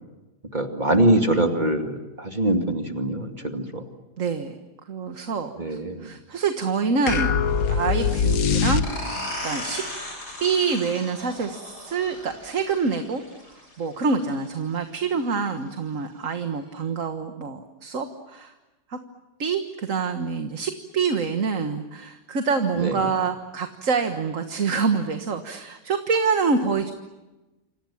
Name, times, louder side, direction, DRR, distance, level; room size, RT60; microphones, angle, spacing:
voice 1, 0.5-3.8 5.6-6.1 22.8-22.9, right 1 dB, 25° right, 4 dB, 2.5 m, -23 dB
voice 2, 4.2-4.6 4.9-7.3 7.6-8.8 9.4-9.8 10.4-13.2 13.5-18.5 18.9-19.0 19.4-26.9, right 5 dB, 50° right, 6 dB, 1.8 m, -26 dB
sound 1, 7.1-9.3, left 6 dB, 60° left, 1.6 m, -22 dB
sound 2, 8.8-14.2, left 1 dB, 75° left, 8.6 m, -36 dB
28.5 x 27.0 x 7.3 m, 1.1 s
omnidirectional pair, 1.8 m